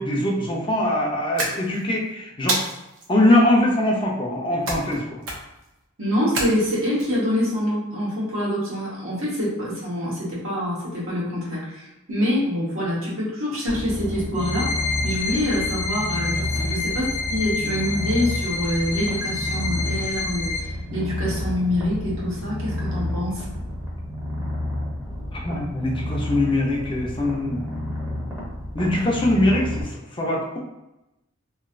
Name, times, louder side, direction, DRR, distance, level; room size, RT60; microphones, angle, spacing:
voice 1, 0.0-2.6 3.1-5.2 16.5-16.7 25.3-27.7 28.7-30.6, left 1 dB, 25° left, -2 dB, 0.5 m, -22 dB
sound 1, 1.4-2.0 2.5-3.1 4.7-5.0 5.2-5.7 6.3-7.0, right 2 dB, 65° right, 0.8 m, -28 dB
voice 2, 6.0-14.7 15.0-23.5, left 1 dB, 85° right, -6 dB, 1.2 m, -25 dB
Purr, 13.7-29.8, left 1 dB, 15° right, 0.7 m, -30 dB
sound 2, 14.4-20.6, left 4 dB, 80° left, 0.6 m, -29 dB
3.0 x 2.7 x 2.5 m, 0.94 s
head